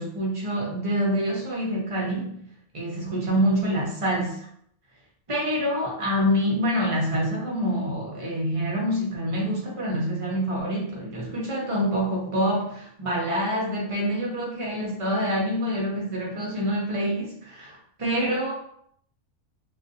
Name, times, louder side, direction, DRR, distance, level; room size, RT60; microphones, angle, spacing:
voice 1, 0.0-2.4 2.7-4.4 5.3-18.5, equal, 40° right, -4 dB, 0.4 m, -26 dB
2.4 x 2.3 x 2.6 m, 0.68 s
omnidirectional pair, 1.5 m